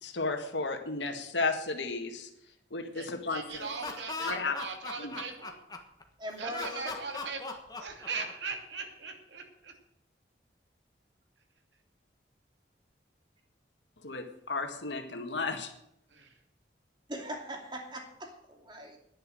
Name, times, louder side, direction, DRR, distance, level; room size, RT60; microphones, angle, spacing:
voice 1, 0.0-2.3 2.7-3.7 4.2-4.6 5.0-5.1 14.0-15.7, left 3 dB, 80° left, 5 dB, 1.9 m, -33 dB
voice 2, 2.9-5.6 6.4-9.7 16.1-16.4, right 4 dB, 80° right, 3 dB, 2.6 m, -40 dB
Laughter, 3.5-6.0 6.5-8.5, left 3 dB, 20° left, 1.4 m, -39 dB
voice 3, 6.2-6.9 17.1-19.0, equal, 25° right, 2 dB, 2.6 m, -40 dB
10.5 x 10.5 x 7.6 m, 0.78 s
head